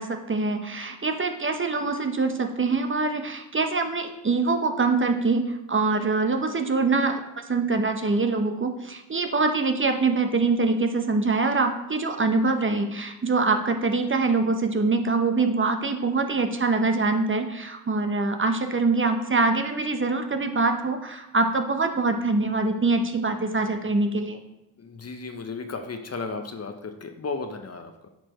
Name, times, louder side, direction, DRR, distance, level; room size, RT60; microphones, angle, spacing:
voice 1, 0.0-24.4, right 3 dB, 25° right, 6 dB, 0.7 m, -24 dB
voice 2, 24.8-28.1, left 4 dB, 30° left, 6 dB, 0.7 m, -34 dB
9.0 x 4.4 x 3.0 m, 0.92 s
hypercardioid pair, 50°, 48 cm